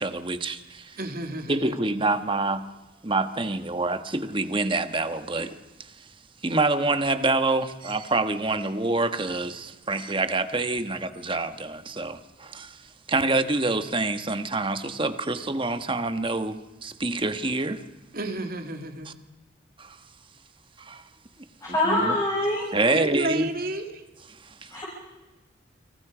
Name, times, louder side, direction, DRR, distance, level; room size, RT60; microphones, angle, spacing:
voice 1, 0.0-1.0 1.5-2.6 3.0-6.0 6.4-12.8 13.1-17.8 19.0-19.1 19.8-20.0 20.8-21.0 21.7-22.2 22.7-23.5 24.4-24.8, right 2 dB, 25° right, 1.3 m, -27 dB
voice 2, 1.0-1.7 18.1-19.1 22.9-24.0, right 1 dB, 50° right, 2.4 m, -31 dB
voice 3, 21.6-22.7 24.7-24.8, left 1 dB, 15° left, 7.1 m, -24 dB
29.5 x 26.0 x 5.0 m
head